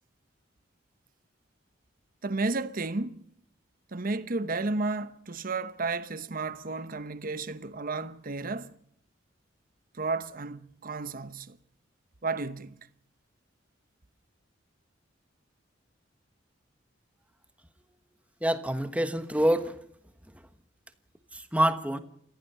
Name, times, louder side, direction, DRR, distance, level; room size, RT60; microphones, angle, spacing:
voice 1, 2.2-3.3 3.9-8.8 9.9-11.6 12.2-12.9, right 3 dB, 50° right, 0.9 m, -32 dB
voice 2, 18.4-19.8 21.3-22.0, right 1 dB, 5° right, 1.3 m, -26 dB
29.5 x 16.0 x 5.6 m
head